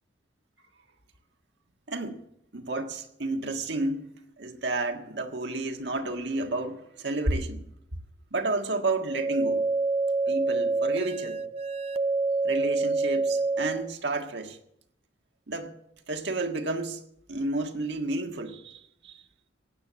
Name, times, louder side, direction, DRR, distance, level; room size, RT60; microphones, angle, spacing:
voice 1, 1.9-2.2 2.5-4.1 4.4-7.6 8.3-9.6 10.3-11.4 12.4-14.6 15.5-15.7 16.1-17.0 17.3-19.2, right 2 dB, 65° right, 1.6 m, -31 dB
sound 1, 9.0-13.9, right 3 dB, 35° right, 0.5 m, -27 dB
16.5 x 9.2 x 7.4 m
head